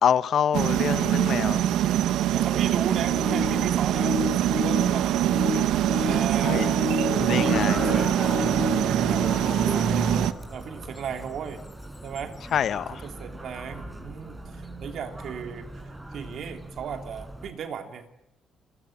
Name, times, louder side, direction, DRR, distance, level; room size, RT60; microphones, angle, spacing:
voice 1, 0.0-1.6 6.4-6.7 7.1-8.0 12.5-13.0, left 8 dB, 65° left, 1.0 m, -26 dB
sound 1, 0.5-10.3, right 12 dB, 90° right, 1.1 m, -24 dB
voice 2, 2.3-8.2 8.9-10.1 10.5-11.6 12.0-12.4 12.7-18.1, right 7 dB, 70° right, 3.2 m, -36 dB
sound 2, 2.7-10.3 11.0-11.1 12.2-12.3, left 6 dB, 40° left, 1.1 m, -33 dB
sound 3, 7.2-17.5, right 1 dB, 15° right, 5.2 m, -35 dB
28.5 x 23.5 x 8.8 m
cardioid pair, 90°, 0 cm